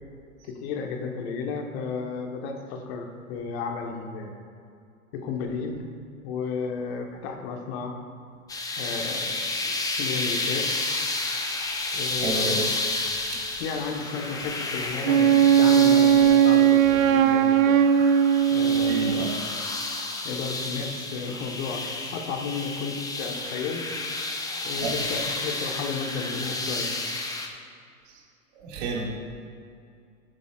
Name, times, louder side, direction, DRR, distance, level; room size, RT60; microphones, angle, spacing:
voice 1, 0.4-4.3 5.1-5.8 6.2-7.9 8.8-9.4 9.7-10.7 11.9-12.7 13.5-17.8 18.5-19.3 20.2-24.0 24.6-27.0, left 5 dB, 50° left, 3 dB, 1.5 m, -33 dB
sound 1, 8.5-27.5, left 2 dB, 10° left, 0.8 m, -31 dB
voice 2, 12.2-12.6 18.9-19.3 24.8-24.9 28.6-29.1, right 4 dB, 55° right, -3 dB, 2.3 m, -30 dB
Wind instrument woodwind instrument, 15.0-19.4, right 9 dB, 80° right, 0.6 m, -18 dB
12.5 x 9.5 x 2.5 m, 2.4 s
hypercardioid pair, 110°, 40 cm